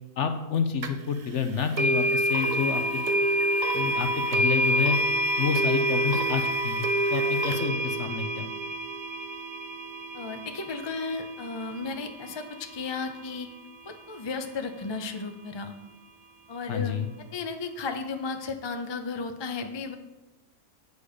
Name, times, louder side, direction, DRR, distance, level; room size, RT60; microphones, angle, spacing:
voice 1, 0.2-3.0 3.7-5.0 5.4-8.5 16.7-17.1, left 6 dB, 60° left, 7 dB, 0.9 m, -29 dB
sound 1, 0.8-0.9 1.8-12.7, right 1 dB, 50° right, 0.6 m, -27 dB
voice 2, 10.1-13.5 13.8-15.7 16.5-17.0 17.3-19.9, left 4 dB, 30° left, 6 dB, 0.5 m, -34 dB
8.3 x 6.7 x 5.0 m, 1.1 s
omnidirectional pair, 1.6 m